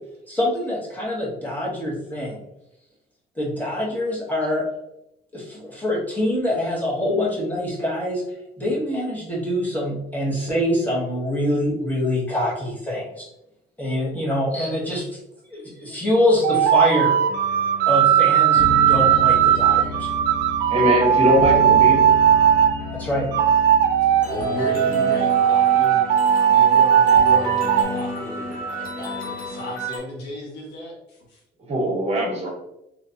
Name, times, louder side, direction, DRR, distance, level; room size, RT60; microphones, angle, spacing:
voice 1, 0.3-2.4 3.4-4.6 5.3-8.2 8.6-13.3 13.8-15.1 15.5-17.2 17.9-20.1 22.9-23.3, left 1 dB, 10° left, -5 dB, 1.4 m, -24 dB
sound 1, 16.4-22.7 23.3-27.8, right 10 dB, 80° right, 0.4 m, -17 dB
sound 2, 17.3-30.0, left 1 dB, 55° left, 1.2 m, -31 dB
voice 2, 20.7-22.1 31.7-32.5, left 1 dB, 40° right, -1 dB, 1.3 m, -21 dB
voice 3, 24.2-26.2 26.4-31.4, left 1 dB, 85° left, -1 dB, 1.2 m, -34 dB
3.3 x 3.1 x 2.6 m, 0.84 s
cardioid pair, 110°, 17 cm